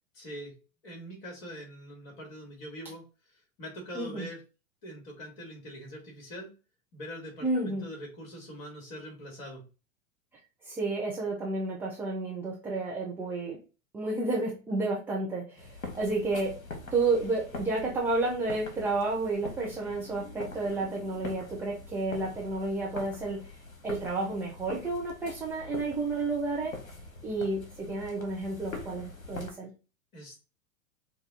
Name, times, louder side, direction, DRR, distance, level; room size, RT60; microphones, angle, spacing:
voice 1, 0.1-0.5 0.8-3.0 3.6-4.4 4.8-6.5 6.9-9.6 30.1-30.4, equal, 45° left, 0 dB, 2.0 m, -43 dB
voice 2, 3.9-4.3 7.4-7.8 10.7-13.6 13.9-16.6 16.9-23.5 23.8-26.7 27.2-29.7, right 3 dB, 5° right, -5 dB, 0.4 m, -31 dB
sound 1, 15.6-29.5, left 3 dB, 75° left, 1.1 m, -44 dB
5.2 x 2.3 x 2.7 m, 0.32 s
figure-of-eight pair, 100°, 41 cm